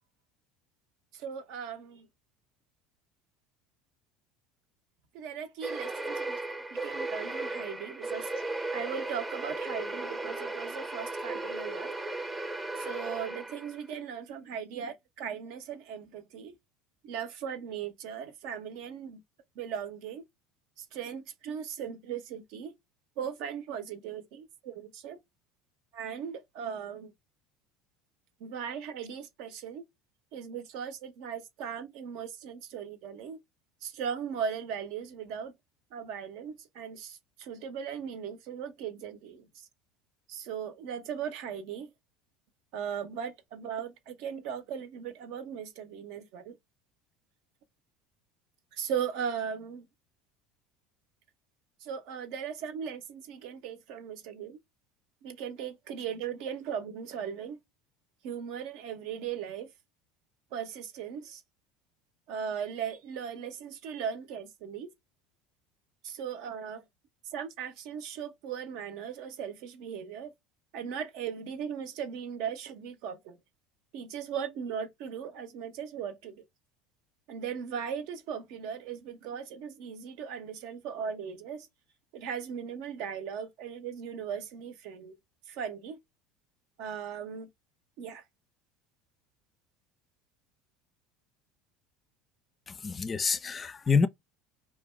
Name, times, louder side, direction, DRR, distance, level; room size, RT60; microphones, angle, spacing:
voice 1, 1.1-2.1 5.1-8.3 8.7-11.9 12.8-16.6 17.0-19.2 19.6-20.3 20.8-22.7 23.2-25.2 25.9-27.1 28.4-29.9 30.3-33.4 33.8-35.5 35.9-39.5 40.3-41.9 42.7-46.5 48.7-49.9 51.8-54.6 55.2-57.6 58.2-59.7 60.5-61.4 62.3-64.9 66.0-66.8 67.3-70.3 70.7-73.4 73.9-76.4 77.3-81.7 82.1-85.2 85.5-86.0 86.8-87.5 88.0-88.2, right 7 dB, 70° right, 0.6 m, -38 dB
sound 1, 5.6-13.9, right 2 dB, 20° right, 0.6 m, -36 dB
voice 2, 92.7-94.1, left 5 dB, 30° left, 0.4 m, -27 dB
2.5 x 2.2 x 3.0 m
hypercardioid pair, 90°, 0 cm